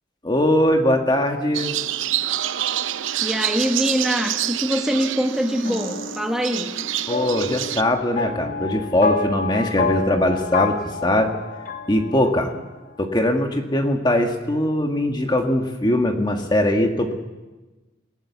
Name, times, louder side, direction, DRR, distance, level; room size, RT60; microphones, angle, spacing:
voice 1, 0.2-1.7 7.1-11.3 11.9-12.5 13.0-17.1, left 1 dB, 20° left, 4 dB, 1.7 m, -21 dB
sound 1, 1.5-7.8, right 12 dB, 85° right, 0.7 m, -27 dB
voice 2, 3.2-6.8, equal, 5° right, 3 dB, 1.7 m, -23 dB
sound 2, 5.6-12.6, left 4 dB, 45° left, 2.3 m, -29 dB
27.5 x 17.5 x 7.3 m, 1.2 s
head